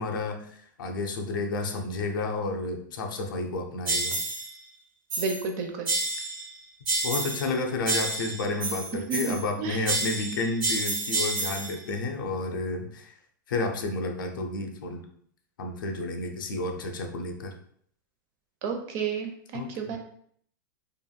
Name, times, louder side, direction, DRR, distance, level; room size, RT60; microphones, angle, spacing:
voice 1, 0.0-4.2 7.0-13.1 13.5-15.0 15.6-17.5 19.5-20.0, left 2 dB, 85° left, 4 dB, 0.5 m, -31 dB
sound 1, 3.9-4.5 5.1-5.5 5.9-6.5 6.9-7.5 7.9-9.5 9.9-11.8, right 2 dB, 75° right, 1.3 m, -29 dB
voice 2, 5.2-5.9 9.1-9.9 18.6-20.0, right 5 dB, 50° right, 4 dB, 0.5 m, -32 dB
2.9 x 2.5 x 2.2 m, 0.63 s
hypercardioid pair, 120°, 11 cm